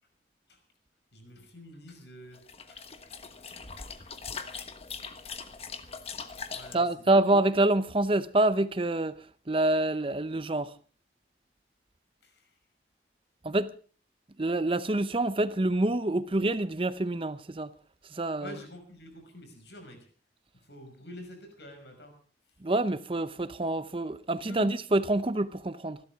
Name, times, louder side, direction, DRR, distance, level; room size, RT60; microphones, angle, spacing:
voice 1, 1.1-2.4 2.7-2.8 3.7-4.2 6.5-7.2 12.2-12.4 18.4-20.0 20.7-22.1 24.5-24.7, left 1 dB, 70° left, 6.0 m, -47 dB
sound 1, 2.3-6.7, left 5 dB, 35° left, 1.3 m, -41 dB
voice 2, 6.7-10.7 13.4-13.7 14.4-17.7 18.1-18.6 22.6-26.0, right 2 dB, 30° right, 0.7 m, -27 dB
28.0 x 12.5 x 3.6 m
head